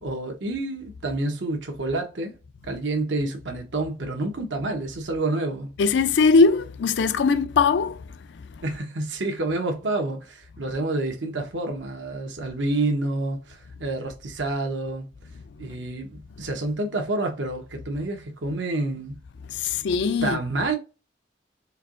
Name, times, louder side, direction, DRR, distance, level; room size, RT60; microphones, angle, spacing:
voice 1, 0.0-2.3 2.6-5.7 8.6-15.1 15.6-19.2 20.2-20.8, right 2 dB, 75° right, 0.9 m, -28 dB
voice 2, 5.8-8.1 8.3-8.6 15.6-15.8 19.5-20.4, left 4 dB, 65° left, 0.4 m, -21 dB
4.5 x 2.6 x 2.5 m
head